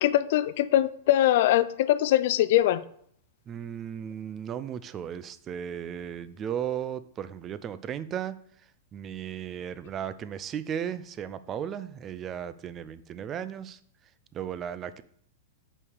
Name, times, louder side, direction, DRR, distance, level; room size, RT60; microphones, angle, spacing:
voice 1, 0.0-2.8, left 13 dB, 60° left, 16 dB, 0.5 m, -22 dB
voice 2, 3.5-8.4 8.9-13.8 14.3-15.0, right 9 dB, 30° right, 15 dB, 0.5 m, -35 dB
5.4 x 5.4 x 6.4 m, 0.64 s
hypercardioid pair, 110°, 0 cm